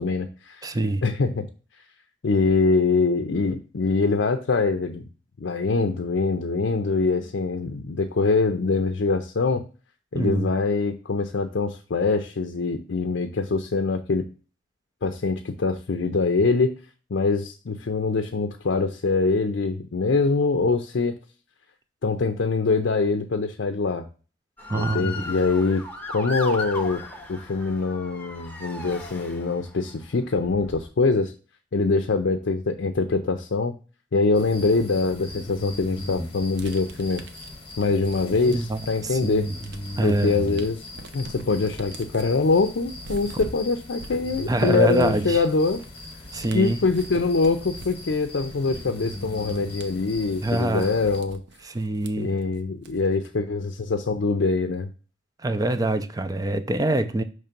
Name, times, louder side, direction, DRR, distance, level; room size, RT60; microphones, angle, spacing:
voice 1, 0.0-0.7 1.0-1.5 2.2-5.1 5.4-9.7 10.1-14.2 15.0-16.8 17.1-21.2 22.0-24.1 24.7-27.0 27.3-31.3 31.7-33.7 34.1-37.2 37.8-39.5 40.0-40.9 41.1-45.8 46.5-51.4 52.2-54.9, left 4 dB, 70° left, 0.5 m, -24 dB
voice 2, 0.6-1.0 10.1-10.5 24.7-25.3 38.5-39.5 40.0-40.4 44.5-45.4 46.3-46.8 50.4-50.9 51.6-52.3 55.4-57.2, right 2 dB, 20° right, 0.5 m, -25 dB
Motor vehicle (road) / Siren, 24.6-29.8 30.5-30.9, left 2 dB, 10° left, 0.8 m, -36 dB
sound 1, 34.3-51.2, left 1 dB, 30° left, 1.0 m, -39 dB
sound 2, 36.6-39.0 39.3-53.3, right 2 dB, 65° right, 0.7 m, -45 dB
5.7 x 3.3 x 5.1 m
head